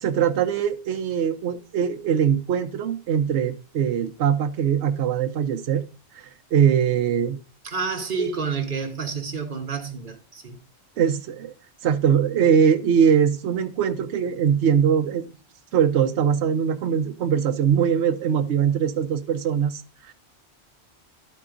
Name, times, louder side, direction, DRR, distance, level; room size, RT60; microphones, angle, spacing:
voice 1, 0.0-5.8 6.1-7.4 8.1-8.3 11.0-11.5 11.8-15.2 15.7-20.1, right 8 dB, 80° right, 0.9 m, -22 dB
voice 2, 7.6-10.6, right 5 dB, 55° right, 1.0 m, -29 dB
12.0 x 4.5 x 3.7 m
omnidirectional pair, 1.1 m